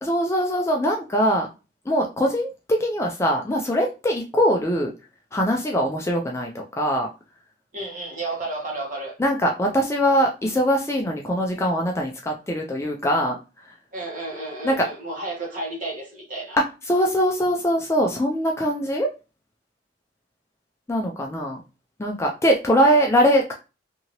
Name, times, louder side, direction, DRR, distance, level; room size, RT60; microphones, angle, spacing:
voice 1, 0.0-1.5 1.9-4.9 5.3-7.1 9.2-13.4 14.6-14.9 16.5-19.1 20.9-21.6 22.0-23.5, equal, 15° left, 0.3 m, -22 dB
voice 2, 7.7-9.2 13.9-16.6, right 2 dB, 45° right, 1.2 m, -32 dB
2.7 x 2.6 x 2.9 m
head